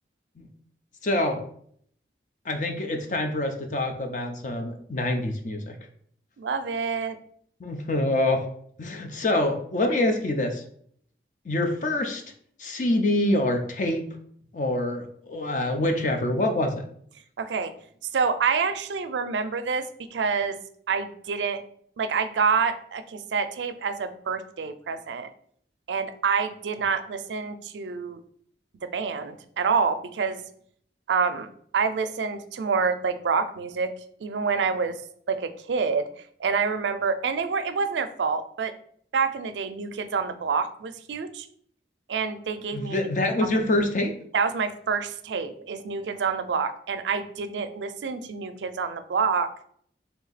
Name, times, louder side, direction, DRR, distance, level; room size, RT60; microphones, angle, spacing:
voice 1, 1.0-1.4 2.5-5.8 7.6-8.5 8.8-10.6 11.4-12.2 12.6-14.1 14.5-16.8 42.7-44.1, left 1 dB, 45° left, 5 dB, 0.6 m, -25 dB
voice 2, 6.4-7.2 17.4-17.7 18.1-19.9 20.1-20.6 20.9-21.6 22.0-25.3 25.9-28.2 28.8-30.4 31.1-31.5 31.7-33.9 34.2-35.0 35.3-36.1 36.4-38.7 39.1-41.5 42.1-43.6 44.3-49.5, right 5 dB, 85° right, 10 dB, 0.4 m, -27 dB
3.5 x 2.8 x 4.0 m, 0.63 s
head